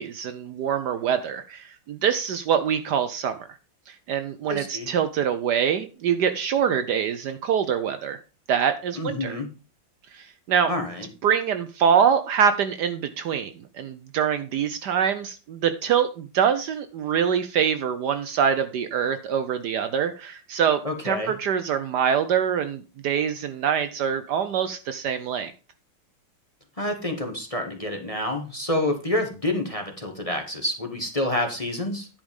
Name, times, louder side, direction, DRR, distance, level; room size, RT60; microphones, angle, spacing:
voice 1, 0.0-3.4 3.9-8.2 8.5-9.4 10.1-10.7 11.2-25.5, right 8 dB, 70° right, 10 dB, 1.2 m, -24 dB
voice 2, 4.5-4.9 9.0-9.5 10.7-11.1 20.8-21.3 26.8-32.1, left 1 dB, 20° left, 4 dB, 1.3 m, -28 dB
10.5 x 5.1 x 5.2 m, 0.33 s
omnidirectional pair, 2.1 m